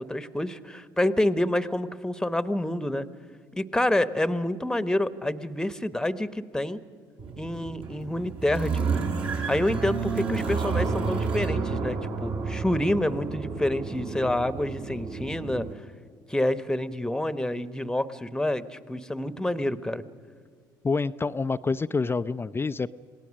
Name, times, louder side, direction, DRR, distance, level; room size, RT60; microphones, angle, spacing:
voice 1, 0.0-3.1 3.5-6.8 7.4-9.0 9.5-15.7 16.3-20.0, left 1 dB, 5° left, 14 dB, 1.1 m, -28 dB
sound 1, 7.2-15.7, right 5 dB, 55° right, 3.3 m, -30 dB
voice 2, 20.8-22.9, left 4 dB, 20° left, 13 dB, 0.5 m, -27 dB
27.5 x 18.5 x 6.4 m, 2.1 s
hypercardioid pair, 65°, 11 cm